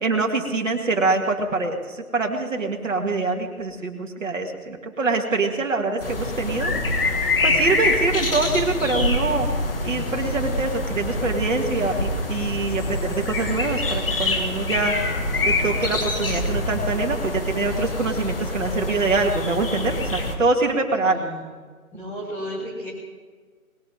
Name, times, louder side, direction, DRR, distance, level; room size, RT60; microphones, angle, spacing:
voice 1, 0.0-6.7 7.4-9.5 9.8-15.0 15.4-21.2, right 3 dB, 55° right, 2 dB, 2.7 m, -24 dB
sound 1, 6.0-20.4, left 2 dB, 40° left, 1.9 m, -25 dB
voice 2, 21.0-21.4 21.9-22.9, equal, 5° left, -6 dB, 2.8 m, -33 dB
21.0 x 18.0 x 3.7 m, 1.5 s
figure-of-eight pair, 160°, 44 cm